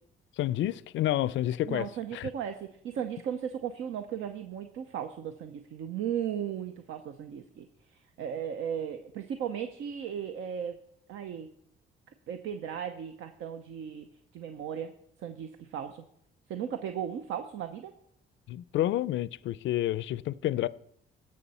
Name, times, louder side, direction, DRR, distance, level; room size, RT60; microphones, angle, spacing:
voice 1, 0.4-2.3 18.5-20.7, left 13 dB, 75° left, 0.4 m, -29 dB
voice 2, 1.7-10.8 11.1-11.5 12.3-14.1 14.3-14.9 15.2-16.0 16.5-17.9, right 8 dB, 80° right, 0.7 m, -36 dB
17.0 x 6.6 x 4.2 m
cardioid pair, 90°, 20 cm